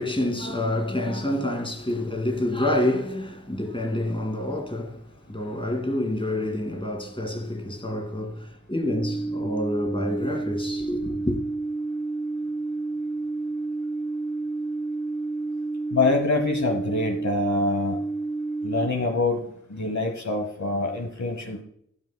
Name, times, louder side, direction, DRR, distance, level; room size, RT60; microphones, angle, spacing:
voice 1, 0.0-11.4, left 1 dB, 15° left, 2.0 m, -28 dB
sound 1, 8.8-18.8, right 2 dB, 15° right, 1.8 m, -30 dB
voice 2, 15.9-18.0 18.6-21.6, left 2 dB, 65° left, 1.0 m, -25 dB
12.5 x 5.4 x 2.2 m
wide cardioid pair, 40°, 30 cm